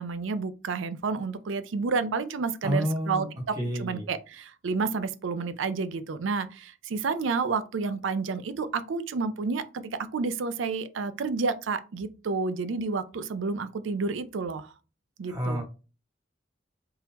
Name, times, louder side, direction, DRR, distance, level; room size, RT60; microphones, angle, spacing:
voice 1, 0.0-9.6 10.1-14.7 15.2-15.6, right 4 dB, 80° right, 0.4 m, -30 dB
voice 2, 2.6-3.2 3.6-4.1 15.3-15.6, equal, 20° right, 1.2 m, -29 dB
3.7 x 2.9 x 2.9 m
head